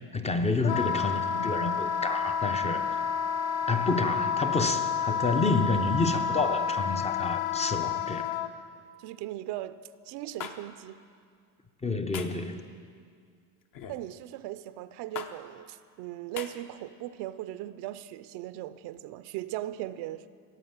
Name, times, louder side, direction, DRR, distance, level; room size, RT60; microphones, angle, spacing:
voice 1, 0.1-2.9 3.7-8.3 11.8-12.6, left 3 dB, 15° left, 0.5 m, -29 dB
Wind instrument woodwind instrument, 0.6-8.5, left 7 dB, 85° left, 0.8 m, -30 dB
voice 2, 9.0-9.8 10.0-11.0 13.9-20.3, right 14 dB, 65° right, 0.6 m, -38 dB
sound 1, 10.4-10.6 12.1-12.4 13.7-14.0 15.2-15.3 16.4-16.5, left 8 dB, 50° left, 1.0 m, -38 dB
16.5 x 7.3 x 8.8 m
cardioid pair, 130°, 42 cm